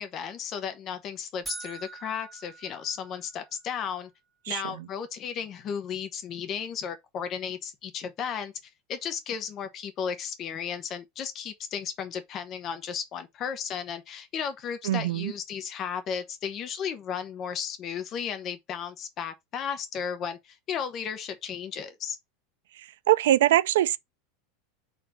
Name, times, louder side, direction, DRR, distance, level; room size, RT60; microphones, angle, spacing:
voice 1, 0.0-4.1 4.5-8.5 8.9-22.2, left 7 dB, 25° left, 1.0 m, -34 dB
sound 1, 1.4-3.6, right 2 dB, 5° right, 2.5 m, -42 dB
voice 2, 14.9-15.3 23.1-24.0, right 13 dB, 90° right, 0.5 m, -22 dB
4.2 x 4.2 x 5.5 m
supercardioid pair, 180°, 0 cm